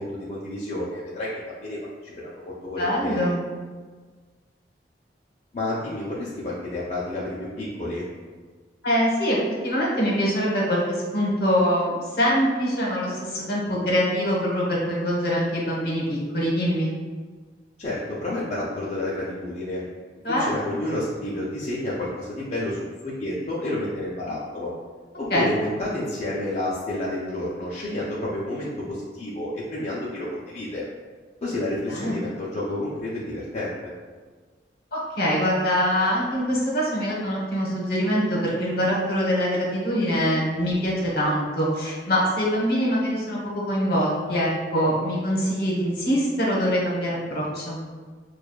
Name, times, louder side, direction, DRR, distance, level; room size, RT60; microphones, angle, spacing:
voice 1, 0.0-3.3 5.5-8.1 17.8-19.9 20.3-24.7 25.2-30.8 31.4-33.9, left 1 dB, 40° left, -7 dB, 0.5 m, -30 dB
voice 2, 2.8-3.4 8.8-9.4 9.6-16.9 20.2-20.5 25.3-25.5 31.9-32.2 34.9-47.8, equal, 60° left, -4 dB, 1.1 m, -24 dB
6.3 x 2.3 x 2.3 m, 1.5 s
head